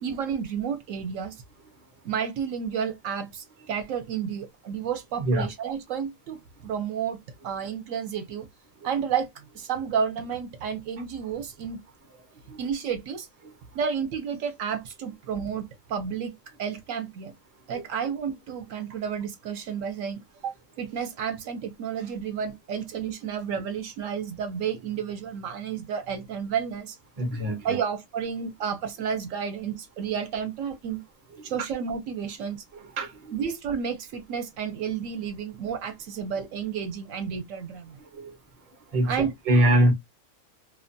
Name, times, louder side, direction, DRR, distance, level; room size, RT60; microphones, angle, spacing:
voice 1, 0.0-1.4 2.0-8.5 8.8-11.8 12.6-13.3 13.7-17.3 17.7-27.0 27.6-31.0 31.4-32.6 33.3-38.0 39.0-39.3, right 7 dB, 70° right, 0.9 m, -31 dB
voice 2, 27.2-27.8 33.0-33.1 38.9-39.9, right 1 dB, 40° right, 0.6 m, -22 dB
2.6 x 2.1 x 2.5 m
omnidirectional pair, 1.5 m